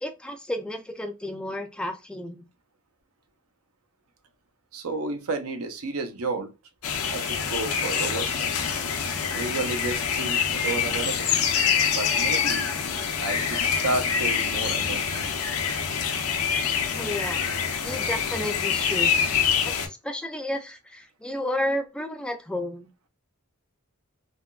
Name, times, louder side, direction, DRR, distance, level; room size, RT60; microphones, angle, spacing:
voice 1, 0.0-2.5 17.0-17.4 17.8-19.2 19.6-23.1, left 1 dB, 5° left, 0.4 m, -32 dB
voice 2, 4.7-6.5 7.1-8.5 9.3-11.3 11.9-12.7 13.2-15.3, right 3 dB, 75° right, 0.6 m, -31 dB
sound 1, 6.8-19.9, left 7 dB, 75° left, 0.6 m, -26 dB
3.5 x 2.2 x 2.3 m
head